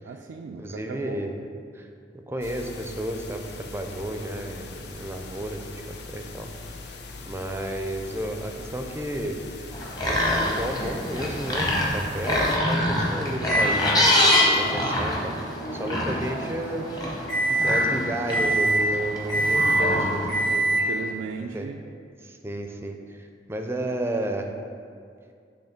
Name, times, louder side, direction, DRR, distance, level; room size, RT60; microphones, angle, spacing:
voice 1, 0.1-1.2 15.9-16.1 19.8-20.0 20.7-21.8, right 5 dB, 85° right, 2 dB, 0.3 m, -36 dB
voice 2, 0.6-1.5 1.7-1.9 2.1-6.8 7.2-9.6 10.1-17.2 17.5-20.7 21.4-21.7 22.2-24.5, right 1 dB, 15° right, 4 dB, 0.4 m, -32 dB
sound 1, 2.4-12.6, left 3 dB, 65° left, 0.5 m, -41 dB
sound 2, 9.7-20.5, left 1 dB, 25° left, 0.9 m, -26 dB
Microwave oven, 13.5-13.8 14.3-21.1, right 1 dB, 85° left, 1.0 m, -26 dB
6.5 x 3.1 x 5.8 m, 2.3 s
head